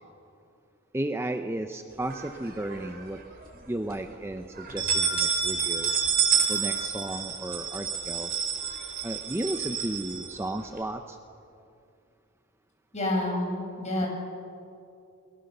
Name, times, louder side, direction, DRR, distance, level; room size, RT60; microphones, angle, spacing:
voice 1, 0.9-3.2 3.5-5.9 6.5-8.3 9.0-11.2, right 1 dB, 10° right, 6 dB, 0.7 m, -34 dB
sound 1, 2.1-3.0 3.4-3.5 3.9-4.0 4.6-10.8, right 7 dB, 45° right, 3.8 m, -29 dB
voice 2, 12.9-14.1, left 1 dB, 35° left, 0 dB, 6.5 m, -28 dB
29.5 x 22.0 x 6.7 m, 2.6 s
head